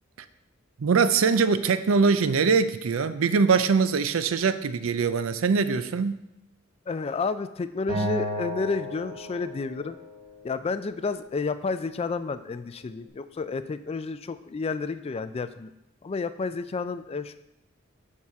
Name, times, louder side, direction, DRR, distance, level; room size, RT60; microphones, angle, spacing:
voice 1, 0.8-6.2, right 5 dB, 90° right, 12 dB, 0.5 m, -22 dB
voice 2, 6.9-10.0 10.4-15.7 16.0-17.4, left 4 dB, 30° left, 12 dB, 0.3 m, -31 dB
Acoustic guitar, 7.9-11.1, right 1 dB, 50° right, 2.2 m, -34 dB
7.1 x 4.8 x 5.6 m, 0.87 s
head